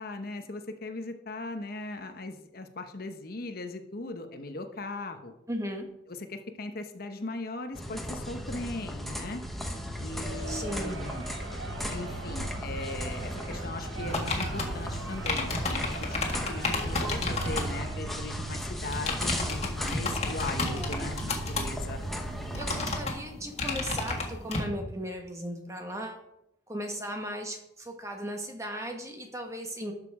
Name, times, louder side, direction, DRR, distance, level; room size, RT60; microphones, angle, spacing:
voice 1, 0.0-5.4 6.1-9.4 10.0-11.2 11.9-22.0, left 2 dB, 50° left, 7 dB, 0.9 m, -39 dB
voice 2, 5.5-5.9 10.5-11.0 20.6-21.1 22.1-22.2 22.5-26.2 26.7-29.9, equal, 15° right, 3 dB, 1.4 m, -37 dB
sound 1, 7.7-23.0, equal, ahead, 1.0 m, -36 dB
Crowd, 10.0-18.4, right 3 dB, 70° right, 1.8 m, -43 dB
sound 2, 14.0-17.7 18.8-24.7, left 3 dB, 35° left, 1.7 m, -33 dB
12.5 x 6.7 x 4.8 m, 0.85 s
head